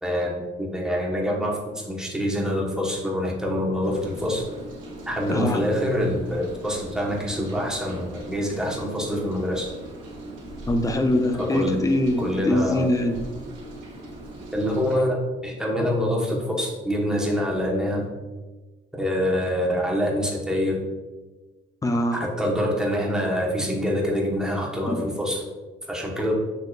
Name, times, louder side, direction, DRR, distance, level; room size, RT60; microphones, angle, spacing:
voice 1, 0.0-4.4 5.1-9.7 11.3-11.9 12.2-12.9 14.5-15.2 15.4-18.1 18.9-20.8 22.1-25.4 25.8-26.3, equal, 5° right, -2 dB, 1.1 m, -25 dB
Rain, 3.8-15.0, right 1 dB, 85° right, 1.4 m, -40 dB
voice 2, 5.3-5.6 10.7-13.2 15.8-15.9 21.8-22.2 24.9-25.0, left 1 dB, 15° left, 6 dB, 0.5 m, -23 dB
6.5 x 2.9 x 2.4 m, 1.2 s
cardioid pair, 90°, 20 cm